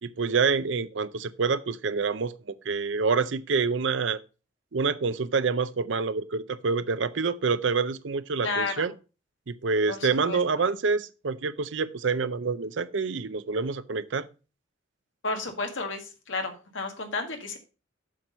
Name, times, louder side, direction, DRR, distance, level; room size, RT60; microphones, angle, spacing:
voice 1, 0.0-2.3 2.7-4.2 4.7-8.9 9.5-14.3, right 4 dB, 65° right, 0.6 m, -27 dB
voice 2, 8.4-8.9 9.9-10.4 15.2-17.6, left 3 dB, 70° left, 1.8 m, -32 dB
7.5 x 6.2 x 5.2 m
head